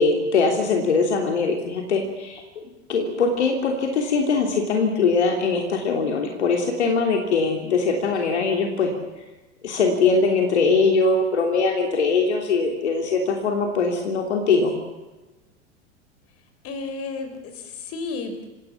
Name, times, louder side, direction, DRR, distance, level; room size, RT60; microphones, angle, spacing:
voice 1, 0.0-2.4 2.9-8.9 9.6-14.8, left 4 dB, 75° left, 3 dB, 3.2 m, -21 dB
voice 2, 16.6-18.5, left 3 dB, 40° left, 8 dB, 5.2 m, -32 dB
29.0 x 17.0 x 7.3 m, 1.1 s
figure-of-eight pair, 85°, 34 cm